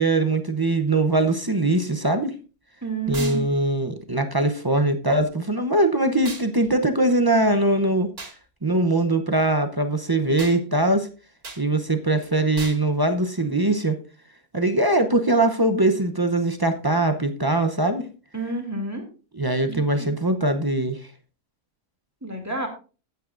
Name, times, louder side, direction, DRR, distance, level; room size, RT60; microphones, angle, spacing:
voice 1, 0.0-2.3 3.1-8.1 8.6-11.1 11.6-14.0 14.5-18.1 19.3-21.0, right 2 dB, 25° right, 7 dB, 0.5 m, -21 dB
voice 2, 2.8-3.4 18.3-19.0 19.7-20.1 22.2-22.7, right 2 dB, 10° right, 2 dB, 2.5 m, -30 dB
sound 1, 3.1-3.4 6.2-6.5 8.2-8.4 10.4-10.6 11.4-11.6 12.6-12.8, right 3 dB, 85° right, 2.8 m, -36 dB
14.5 x 9.2 x 2.5 m, 0.34 s
omnidirectional pair, 1.5 m